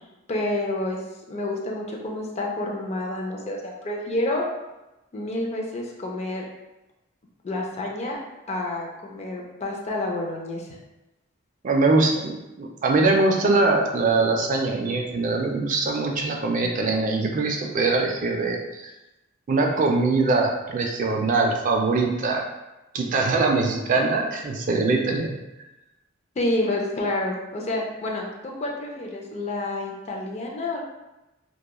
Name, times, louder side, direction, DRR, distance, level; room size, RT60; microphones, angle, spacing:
voice 1, 0.3-1.0 1.3-4.4 5.1-6.4 7.4-8.2 8.5-10.7 26.4-30.8, left 2 dB, 35° left, -1 dB, 0.4 m, -29 dB
voice 2, 11.6-12.3 12.6-18.9 19.5-22.4 22.9-25.4, right 3 dB, 40° right, 1 dB, 0.3 m, -22 dB
2.9 x 2.2 x 2.2 m, 0.99 s
head